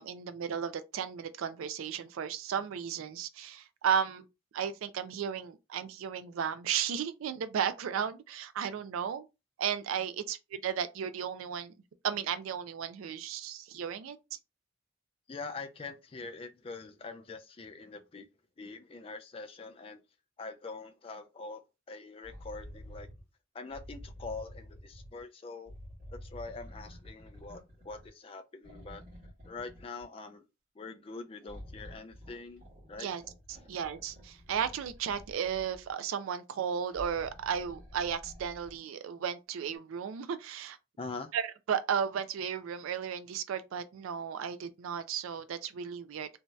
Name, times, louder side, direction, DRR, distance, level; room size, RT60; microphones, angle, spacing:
voice 1, 0.0-4.3 4.5-9.3 9.6-11.7 12.0-14.2 33.0-33.2 33.5-40.8 41.3-46.3, right 8 dB, 85° right, 0.4 m, -34 dB
voice 2, 15.3-18.3 18.6-20.0 20.4-21.6 21.9-23.1 23.5-25.7 26.1-29.0 29.4-30.5 30.8-32.6 32.9-33.1 41.0-41.3, left 3 dB, 25° left, 0.3 m, -44 dB
sound 1, 22.2-23.2 23.7-25.2 25.7-28.2 28.6-30.2 31.4-35.9 36.8-38.8 39.7-39.8, equal, 35° right, 1.5 m, -49 dB
3.0 x 2.7 x 2.2 m
head